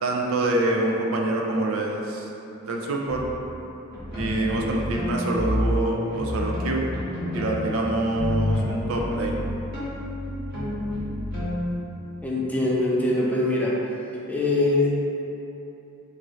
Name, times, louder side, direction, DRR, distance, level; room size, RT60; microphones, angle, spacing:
voice 1, 0.0-2.3 2.6-3.2 4.1-6.9 7.3-9.4, right 2 dB, 70° right, 0 dB, 0.5 m, -26 dB
sound 1, 3.0-3.4 3.9-5.8 6.1-11.7, left 1 dB, 45° right, 1.3 m, -29 dB
voice 2, 12.2-13.8 14.3-14.9, left 2 dB, 5° left, -5 dB, 0.4 m, -23 dB
5.0 x 2.6 x 3.0 m, 2.9 s
head